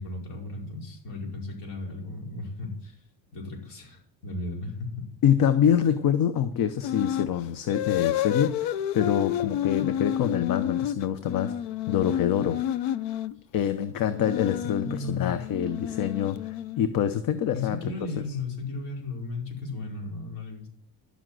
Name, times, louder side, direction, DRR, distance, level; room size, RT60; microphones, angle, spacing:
voice 1, 0.0-3.0 3.3-5.1 14.8-15.3 17.5-20.7, left 3 dB, 70° left, -1 dB, 5.1 m, -35 dB
voice 2, 5.2-11.5 11.9-12.6 13.5-17.9, left 9 dB, 55° left, 11 dB, 0.9 m, -25 dB
sound 1, 6.8-7.3 7.7-13.4 14.1-17.0, left 11 dB, 90° left, 0.7 m, -30 dB
11.5 x 7.5 x 7.7 m, 0.65 s
cardioid pair, 130°, 41 cm